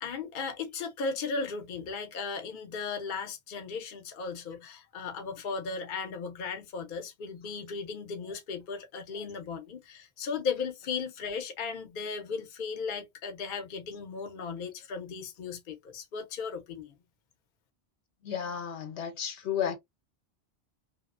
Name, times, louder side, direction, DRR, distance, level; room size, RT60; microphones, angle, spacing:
voice 1, 0.0-16.9, left 5 dB, 55° left, 0.8 m, -36 dB
voice 2, 18.2-19.8, left 8 dB, 85° left, 1.0 m, -32 dB
2.8 x 2.1 x 2.4 m
omnidirectional pair, 1.1 m